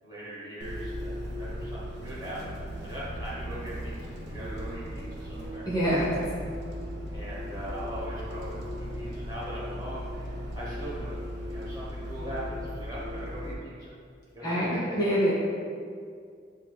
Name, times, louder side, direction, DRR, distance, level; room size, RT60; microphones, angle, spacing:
voice 1, 0.0-5.7 7.1-11.2 11.5-13.9 14.3-15.0, right 1 dB, 20° right, -8 dB, 1.1 m, -40 dB
Bus, 0.6-13.5, equal, 65° right, 0.6 m, -37 dB
voice 2, 5.7-6.2 14.4-14.7 15.0-15.3, equal, 20° left, -8 dB, 1.0 m, -25 dB
8.1 x 2.8 x 2.3 m, 2.2 s
head